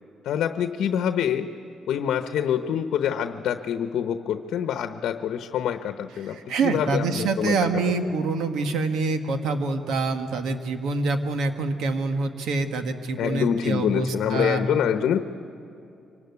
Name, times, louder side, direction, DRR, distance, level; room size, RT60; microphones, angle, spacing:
voice 1, 0.2-1.5 1.9-6.4 6.6-7.7 8.0-8.1 13.2-15.2, left 9 dB, 75° left, 8 dB, 0.9 m, -25 dB
voice 2, 6.2-14.6, right 3 dB, 80° right, 6 dB, 1.7 m, -26 dB
25.0 x 17.5 x 9.6 m, 2.7 s
cardioid pair, 90°, 0 cm